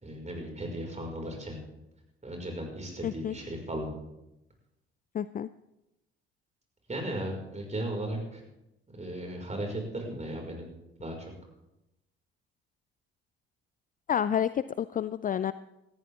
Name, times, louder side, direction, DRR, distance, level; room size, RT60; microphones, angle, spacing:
voice 1, 0.0-1.6 2.2-3.9 6.9-8.4 9.0-10.7 11.0-11.3, right 1 dB, 20° right, 1 dB, 5.7 m, -36 dB
voice 2, 3.0-3.3 5.1-5.5 14.1-15.5, left 9 dB, 25° left, 15 dB, 0.4 m, -29 dB
18.5 x 14.5 x 3.7 m, 0.90 s
figure-of-eight pair, 50°, 32 cm